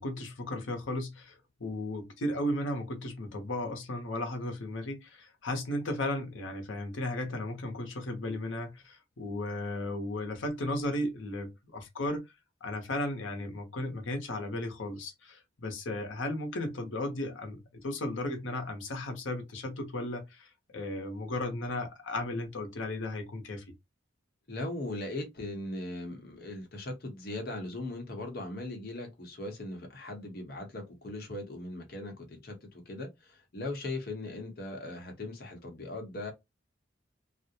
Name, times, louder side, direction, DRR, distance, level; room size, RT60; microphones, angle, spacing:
voice 1, 0.0-12.2 12.6-20.5 20.7-23.6, left 1 dB, 85° left, 0.8 m, -35 dB
voice 2, 24.5-36.3, left 2 dB, 50° left, 0.8 m, -39 dB
2.4 x 2.1 x 2.7 m
head